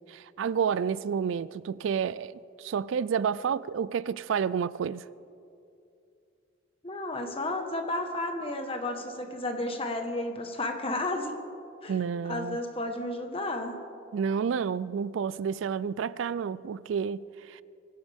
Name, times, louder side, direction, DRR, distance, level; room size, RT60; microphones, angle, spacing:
voice 1, 0.1-5.0 11.9-12.6 14.1-17.6, right 7 dB, 65° right, 0.3 m, -30 dB
voice 2, 6.8-11.3 11.8-13.7, left 2 dB, 30° left, 1.4 m, -32 dB
23.5 x 15.5 x 3.6 m
head